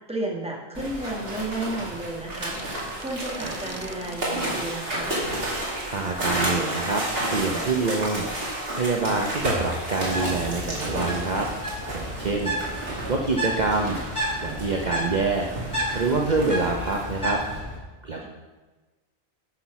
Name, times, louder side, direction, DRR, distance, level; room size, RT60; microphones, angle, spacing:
voice 1, 0.1-5.2 18.2-18.3, right 1 dB, 5° right, -1 dB, 1.6 m, -33 dB
sound 1, 0.7-17.6, right 1 dB, 60° right, 2.9 m, -32 dB
sound 2, 2.1-4.5, right 2 dB, 20° right, 0.4 m, -42 dB
voice 2, 5.9-7.0 7.3-11.5 11.9-12.6 13.1-14.0 14.4-15.5 15.9-17.4 18.0-18.3, right 3 dB, 45° right, 1 dB, 1.0 m, -26 dB
Bird, 10.0-17.8, equal, 25° left, 3.7 m, -32 dB
12.0 x 6.1 x 6.0 m, 1.2 s
omnidirectional pair, 1.1 m